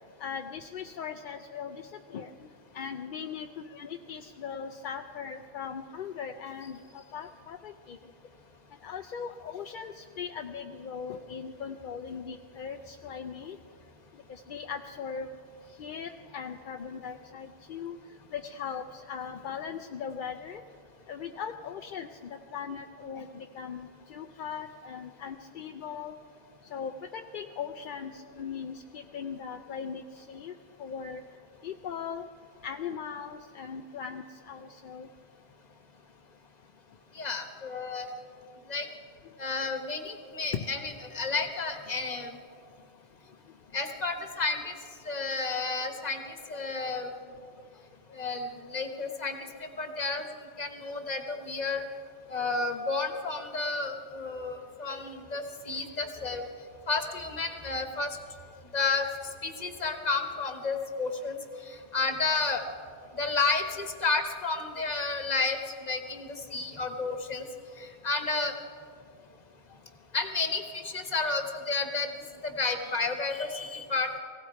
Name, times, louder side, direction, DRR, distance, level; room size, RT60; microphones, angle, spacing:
voice 1, 0.2-2.3 2.7-8.0 8.8-13.6 14.3-15.4 15.7-18.0 18.3-20.6 21.1-26.1 26.7-30.5 30.8-31.2 31.6-32.3 32.6-35.1 40.5-40.7, left 7 dB, 60° left, 6 dB, 0.6 m, -39 dB
voice 2, 37.1-38.1 38.7-38.9 39.4-42.4 43.7-44.7 45.0-47.1 48.1-49.4 49.8-50.3 50.6-51.8 52.3-56.4 56.9-58.2 58.7-59.1 59.4-61.4 61.7-62.6 63.1-67.5 67.8-68.5 70.1-72.1 72.4-74.1, left 3 dB, 40° left, 6 dB, 1.3 m, -31 dB
19.0 x 16.0 x 4.5 m, 2.3 s
omnidirectional pair, 1.1 m